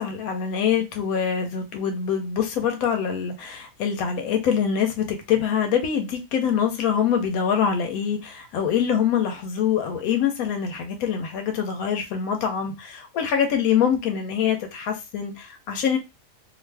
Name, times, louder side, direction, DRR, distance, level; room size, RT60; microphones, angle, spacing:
voice 1, 0.0-16.0, left 8 dB, 90° left, 1.1 m, -24 dB
2.5 x 2.4 x 3.2 m
omnidirectional pair, 1.4 m